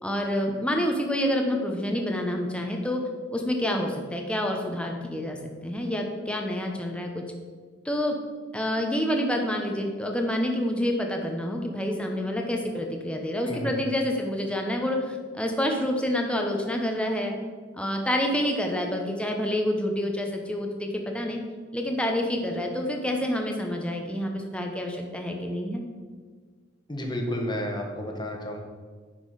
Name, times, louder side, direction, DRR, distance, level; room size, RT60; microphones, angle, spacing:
voice 1, 0.0-3.0 3.3-5.4 5.6-7.2 7.8-8.2 8.5-17.3 17.7-20.9 21.1-21.4 21.7-25.8, left 1 dB, 5° left, 2 dB, 0.9 m, -28 dB
voice 2, 13.5-13.8 26.9-28.6, left 1 dB, 25° left, 1 dB, 1.4 m, -31 dB
9.8 x 6.1 x 4.8 m, 1.5 s
head